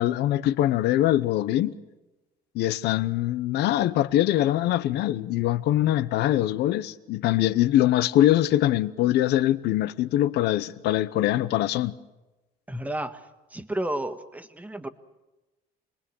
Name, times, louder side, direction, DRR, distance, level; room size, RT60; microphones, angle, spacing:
voice 1, 0.0-1.7 2.5-11.9, left 13 dB, 80° left, 0.9 m, -23 dB
voice 2, 12.7-14.9, right 1 dB, 10° right, 1.5 m, -32 dB
27.0 x 20.5 x 7.1 m
cardioid pair, 110°, 17 cm